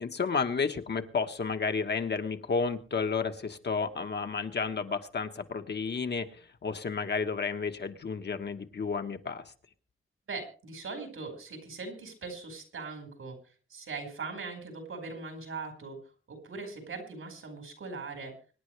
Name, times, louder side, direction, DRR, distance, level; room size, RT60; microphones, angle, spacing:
voice 1, 0.0-9.5, left 5 dB, 55° left, 7 dB, 1.2 m, -32 dB
voice 2, 10.3-13.4 13.7-16.0 16.3-18.3, right 4 dB, 85° right, 4 dB, 4.7 m, -40 dB
25.0 x 10.5 x 3.3 m, 0.37 s
wide cardioid pair, 170°, 21 cm